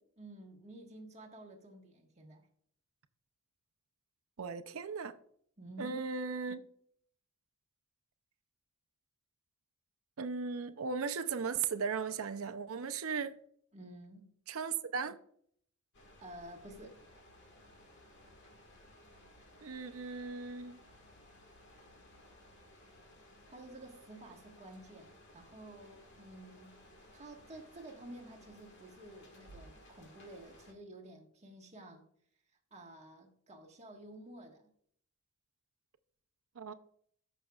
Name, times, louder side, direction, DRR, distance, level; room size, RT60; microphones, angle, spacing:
voice 1, 0.2-2.5 5.6-6.0 13.7-14.3 16.2-17.0 23.5-26.8 27.1-32.0 32.7-34.7, right 1 dB, 30° right, 1.5 m, -51 dB
voice 2, 4.4-5.2 5.8-6.6 10.2-13.3 14.5-15.2 19.6-20.8 36.6-36.7, right 5 dB, 70° right, 0.6 m, -37 dB
sound 1, 15.9-30.7, left 1 dB, 55° left, 1.8 m, -59 dB
14.0 x 6.3 x 2.4 m
head